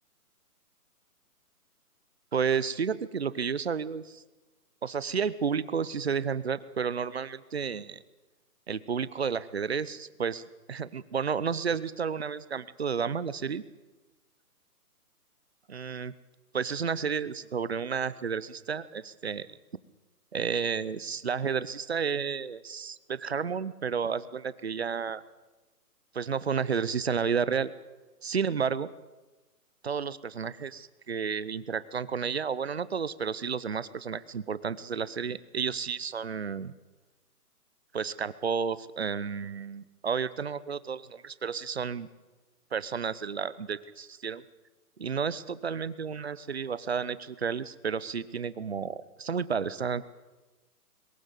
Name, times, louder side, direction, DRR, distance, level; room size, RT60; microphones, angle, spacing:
voice 1, 2.3-4.2 4.8-8.0 8.7-13.6 15.7-16.1 16.5-19.6 20.3-25.2 26.1-27.7 28.2-28.9 29.8-36.7 37.9-42.1 42.7-44.4 45.0-50.0, right 6 dB, 45° right, 17 dB, 0.7 m, -31 dB
22.0 x 14.5 x 8.1 m, 1.2 s
hypercardioid pair, 175°, 47 cm